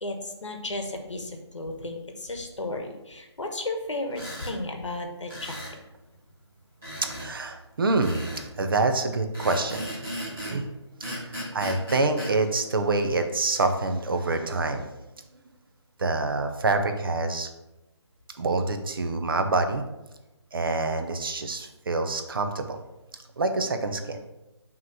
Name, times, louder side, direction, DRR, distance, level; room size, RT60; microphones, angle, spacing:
voice 1, 0.0-5.8, left 2 dB, 90° left, 4 dB, 1.2 m, -34 dB
sound 1, 4.1-4.5 5.3-5.8 6.8-7.3 8.0-8.5 9.3-10.6 11.0-12.3, equal, ahead, 0.3 m, -36 dB
voice 2, 7.1-9.9 10.5-10.6 11.1-14.9 16.0-17.5 18.4-19.8 20.5-22.8 23.4-24.2, right 3 dB, 50° right, 7 dB, 0.7 m, -26 dB
5.7 x 3.1 x 5.7 m, 0.99 s
figure-of-eight pair, 165°, 15 cm